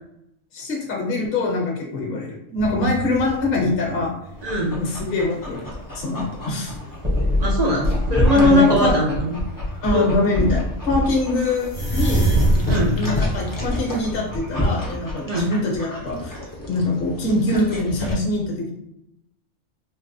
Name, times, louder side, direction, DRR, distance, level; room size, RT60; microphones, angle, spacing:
voice 1, 0.5-4.1 4.7-6.7 8.3-8.9 9.8-12.3 12.9-16.4 16.7-18.7, left 2 dB, 55° left, -1 dB, 0.8 m, -24 dB
sound 1, 2.6-4.7 5.3-5.9 6.4-6.5 7.0-8.6 9.4-9.6 10.0-10.1 10.3-15.4 15.7-15.8, equal, 10° right, 0.6 m, -25 dB
Dog, 4.3-18.1, left 1 dB, 30° left, 0.3 m, -29 dB
voice 2, 4.4-4.8 7.4-9.4 9.9-10.1 12.7-13.0 15.3-15.4, equal, 55° right, -3 dB, 0.4 m, -20 dB
4.0 x 2.1 x 2.6 m, 0.80 s
omnidirectional pair, 1.3 m